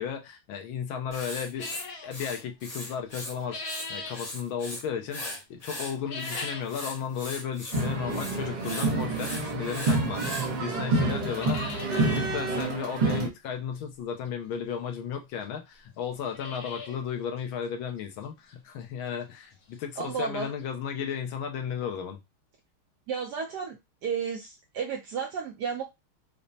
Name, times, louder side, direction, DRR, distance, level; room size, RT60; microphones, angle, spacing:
voice 1, 0.0-1.7 2.0-22.2, left 7 dB, 80° left, 1.4 m, -34 dB
Writing, 1.1-3.3 3.6-4.8 5.1-10.5, left 1 dB, 45° left, 0.4 m, -39 dB
sound 1, 1.6-2.1 3.1-4.2 5.9-6.8 7.2-7.3 8.1-8.2 9.9-10.0 10.4-10.5 10.8-10.9 11.1-11.9 12.3-12.4 12.6-12.7 14.3-14.4 15.1-15.2 15.4-15.5 16.0-17.0 17.4-17.5 18.0-18.1 18.5-18.6 20.3-20.4 20.6-20.7 21.1-21.2, left 3 dB, 60° left, 1.0 m, -39 dB
sound 2, 7.7-13.3, right 3 dB, 85° right, 0.4 m, -28 dB
voice 2, 20.0-20.5 23.1-23.8 24.0-25.8, right 6 dB, 70° right, 1.0 m, -32 dB
5.1 x 2.1 x 2.6 m
omnidirectional pair, 2.3 m